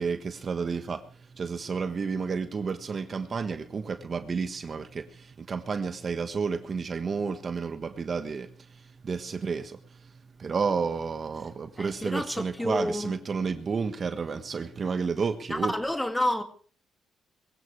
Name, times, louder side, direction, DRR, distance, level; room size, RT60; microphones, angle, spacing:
voice 1, 0.0-10.1 10.4-15.7, right 5 dB, 40° right, 1.4 m, -31 dB
voice 2, 11.8-13.1 15.5-16.4, left 1 dB, 10° left, 2.3 m, -29 dB
22.0 x 16.0 x 3.3 m
cardioid pair, 90°, 0 cm